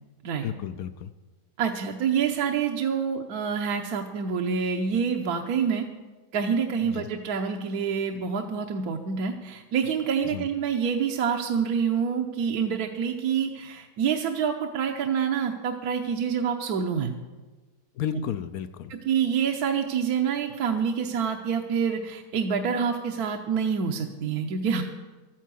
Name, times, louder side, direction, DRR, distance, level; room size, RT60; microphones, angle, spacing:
voice 1, 0.4-1.1 6.9-7.1 10.3-10.4 18.0-18.9, left 10 dB, 70° left, 10 dB, 0.9 m, -32 dB
voice 2, 1.6-5.9 6.3-17.1 18.9-24.8, right 7 dB, 65° right, 3 dB, 1.3 m, -27 dB
13.0 x 9.3 x 7.6 m, 1.2 s
omnidirectional pair, 1.8 m